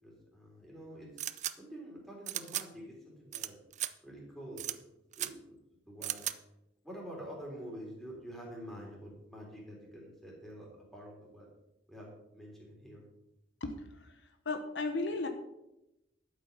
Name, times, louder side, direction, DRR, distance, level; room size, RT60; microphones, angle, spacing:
voice 1, 0.0-3.6 4.0-4.8 5.2-5.6 5.9-6.4 6.8-11.5 11.9-13.1, equal, ahead, -3 dB, 3.7 m, -47 dB
sound 1, 1.2-1.5 2.3-2.6 3.3-3.5 3.7-3.9 4.6-4.7 5.1-5.3 6.0-6.3, right 12 dB, 40° right, 0.5 m, -36 dB
voice 2, 14.4-15.3, left 3 dB, 70° left, 7 dB, 1.1 m, -34 dB
12.5 x 8.4 x 5.3 m, 0.88 s
head